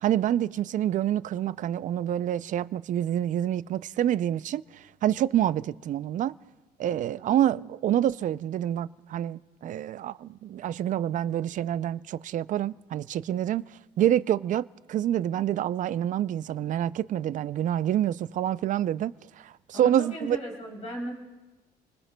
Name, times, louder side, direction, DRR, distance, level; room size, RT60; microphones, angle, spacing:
voice 1, 0.0-6.4 6.8-13.7 14.0-20.4, right 11 dB, 50° right, 0.4 m, -27 dB
voice 2, 19.7-21.1, equal, 45° left, 3.4 m, -35 dB
27.0 x 20.0 x 2.2 m
cardioid pair, 110°, 17 cm